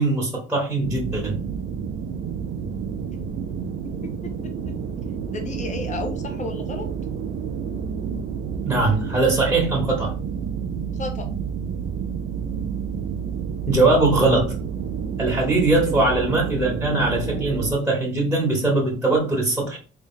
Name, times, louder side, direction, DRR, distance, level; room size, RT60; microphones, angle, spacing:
voice 1, 0.0-1.4 8.7-10.1 13.7-14.5 15.2-19.8, right 2 dB, 5° right, -2 dB, 1.2 m, -21 dB
sound 1, 0.8-17.7, right 7 dB, 80° right, 0.5 m, -29 dB
voice 2, 4.2-4.8 5.3-6.9 10.9-11.3, left 3 dB, 40° left, 5 dB, 0.8 m, -33 dB
3.3 x 2.3 x 3.7 m, 0.37 s
cardioid pair, 90°, 20 cm